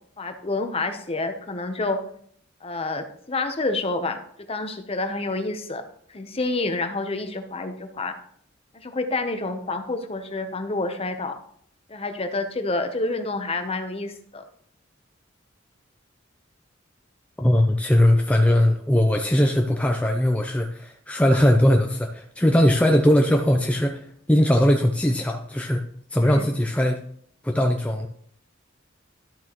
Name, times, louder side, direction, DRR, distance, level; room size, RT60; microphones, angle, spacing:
voice 1, 0.2-2.0 2.6-4.2 4.5-5.8 6.1-8.1 8.7-11.4 11.9-14.4 26.2-26.5, left 2 dB, 30° left, 7 dB, 0.8 m, -28 dB
voice 2, 17.4-25.8 26.1-27.0 27.4-28.1, left 1 dB, 5° left, 2 dB, 0.5 m, -20 dB
12.0 x 6.1 x 3.0 m, 0.64 s
head